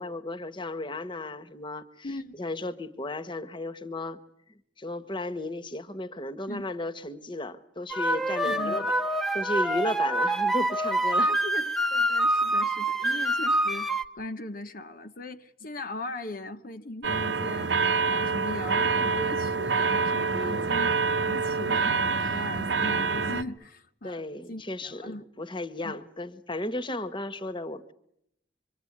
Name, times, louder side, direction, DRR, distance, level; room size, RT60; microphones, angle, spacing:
voice 1, 0.0-4.2 4.8-8.9 9.3-11.3 13.0-13.4 20.3-20.8 24.0-27.9, left 1 dB, 30° left, 1.3 m, -35 dB
voice 2, 2.0-2.4 6.5-6.7 8.4-8.9 11.2-11.6 11.9-24.2 24.5-25.2 25.8-26.0, left 2 dB, 55° left, 1.1 m, -39 dB
sound 1, 7.9-14.0, right 1 dB, ahead, 1.1 m, -26 dB
sound 2, 17.0-23.4, right 4 dB, 90° right, 1.1 m, -26 dB
26.0 x 24.5 x 8.6 m
head